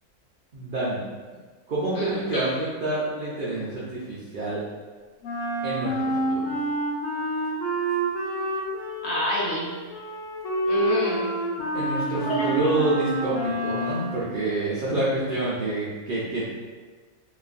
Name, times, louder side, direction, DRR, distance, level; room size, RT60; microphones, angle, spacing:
voice 1, 0.5-1.0 1.7-4.6 5.6-6.6 11.7-16.5, right 2 dB, 80° right, -7 dB, 0.4 m, -27 dB
voice 2, 1.9-2.4 9.0-9.8 10.6-11.3 12.3-12.9, left 1 dB, 85° left, -6 dB, 1.4 m, -28 dB
Wind instrument woodwind instrument, 5.2-14.2, right 1 dB, 70° left, 1.0 m, -28 dB
2.9 x 2.4 x 2.4 m, 1.4 s
omnidirectional pair, 1.6 m